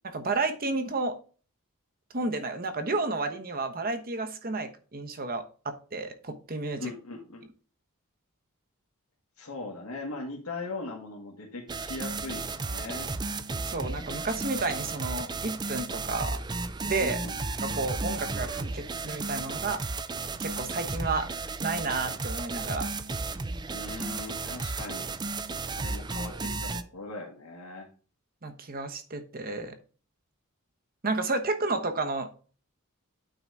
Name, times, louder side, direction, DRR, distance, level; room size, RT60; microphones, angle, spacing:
voice 1, 0.0-1.2 2.1-6.9 13.7-16.4 16.8-17.2 17.6-19.8 20.4-21.3 21.6-22.9 28.4-29.8 31.0-32.3, right 3 dB, 40° right, 7 dB, 1.1 m, -31 dB
voice 2, 6.8-7.5 9.4-13.1 17.0-17.4 23.7-25.1 25.6-27.9, left 2 dB, 80° left, -2 dB, 1.6 m, -39 dB
sound 1, 11.7-26.8, right 3 dB, 20° right, 0.4 m, -34 dB
9.0 x 4.0 x 4.7 m, 0.39 s
head